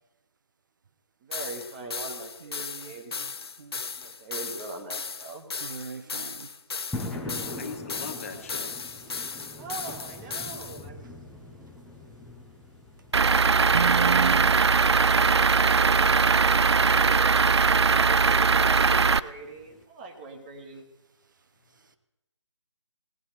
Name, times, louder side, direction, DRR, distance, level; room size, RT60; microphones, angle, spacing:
voice 1, 1.2-3.2 4.0-5.5 9.6-11.1 14.9-17.5 17.8-20.9, right 3 dB, 20° right, 3 dB, 1.2 m, -42 dB
sound 1, 1.3-10.8, left 5 dB, 55° left, 0.6 m, -36 dB
voice 2, 2.4-3.8 5.6-6.5 9.1-9.6 9.9-10.0 13.7-14.9 21.7-22.0, right 6 dB, 40° right, 10 dB, 0.9 m, -34 dB
sound 2, 6.9-19.8, left 2 dB, ahead, 0.4 m, -43 dB
voice 3, 7.6-8.8, left 5 dB, 30° left, 7 dB, 1.0 m, -40 dB
Truck / Idling, 13.1-19.2, right 5 dB, 65° right, 0.4 m, -20 dB
17.0 x 9.8 x 4.2 m, 0.95 s
figure-of-eight pair, 145°, 15 cm